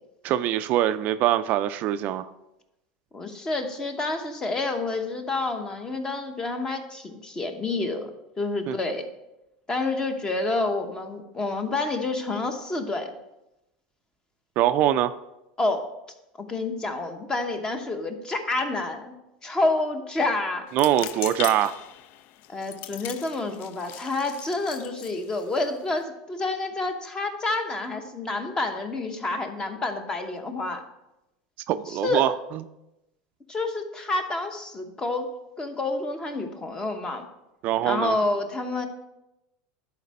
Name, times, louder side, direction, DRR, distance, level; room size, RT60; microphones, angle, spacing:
voice 1, 0.2-2.3 8.7-8.8 14.6-15.1 20.7-21.8 31.7-32.3 37.6-38.2, right 12 dB, 50° right, 12 dB, 0.3 m, -23 dB
voice 2, 3.1-8.1 8.4-9.0 9.7-13.1 15.6-15.9 16.4-19.1 19.4-20.7 22.5-30.8 31.9-32.3 33.5-37.3 37.8-38.9, left 2 dB, 20° left, 6 dB, 0.9 m, -28 dB
sound 1, 20.7-26.0, left 13 dB, 55° left, 0.3 m, -39 dB
11.0 x 4.3 x 4.2 m, 0.93 s
supercardioid pair, 120°, 4 cm